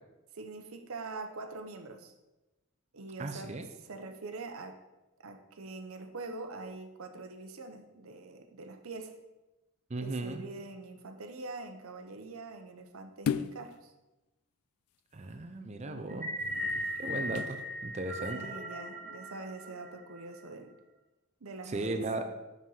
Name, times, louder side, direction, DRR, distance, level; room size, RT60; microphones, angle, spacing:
voice 1, 0.3-2.1 2.9-4.8 5.2-9.2 10.0-13.9 15.9-16.3 18.3-20.7 21.4-22.1, right 3 dB, 70° right, 5 dB, 0.7 m, -44 dB
voice 2, 3.2-3.6 9.9-10.4 15.1-16.3 17.0-18.4 21.7-22.3, right 2 dB, 30° right, 7 dB, 0.5 m, -36 dB
sound 1, 13.3-13.7 16.3-17.6 18.2-18.3, left 7 dB, 80° left, 0.3 m, -36 dB
sound 2, 16.1-20.4, equal, 5° left, 1.9 m, -38 dB
5.4 x 5.2 x 5.6 m, 1.0 s
head